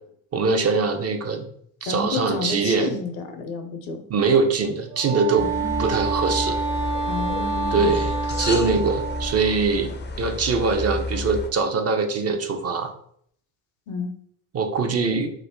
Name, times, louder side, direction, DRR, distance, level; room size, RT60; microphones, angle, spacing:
voice 1, 0.3-1.4 1.8-2.9 4.1-5.5 5.8-6.6 7.7-12.9 14.5-15.3, right 4 dB, 35° right, 5 dB, 0.6 m, -23 dB
voice 2, 1.8-4.0 5.4-5.9 7.1-7.9 13.9-14.1, left 4 dB, 70° left, 6 dB, 0.7 m, -30 dB
Wind instrument woodwind instrument, 4.9-9.6, right 4 dB, 50° right, 1.1 m, -28 dB
sound 1, 5.4-11.5, left 2 dB, 25° left, 0.5 m, -31 dB
2.6 x 2.1 x 3.5 m, 0.65 s
hypercardioid pair, 55°, 46 cm